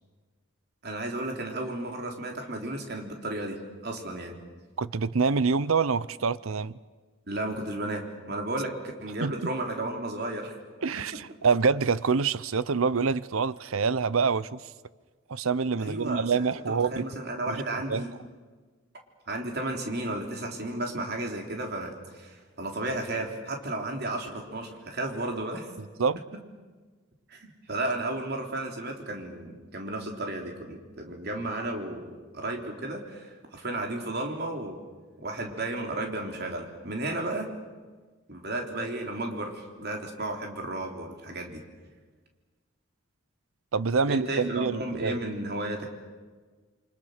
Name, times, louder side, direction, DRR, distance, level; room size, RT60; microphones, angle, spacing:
voice 1, 0.8-4.4 7.3-8.7 9.0-10.6 15.8-18.1 19.3-25.7 27.3-34.8 35.2-37.5 38.3-41.6 44.1-45.9, right 1 dB, 50° right, 3.6 m, -33 dB
voice 2, 4.8-6.7 9.2-9.3 10.8-14.6 15.3-17.0 17.5-17.6 17.9-18.0 26.0-26.2 43.7-45.2, right 5 dB, 80° right, 0.7 m, -26 dB
28.5 x 25.0 x 6.6 m
head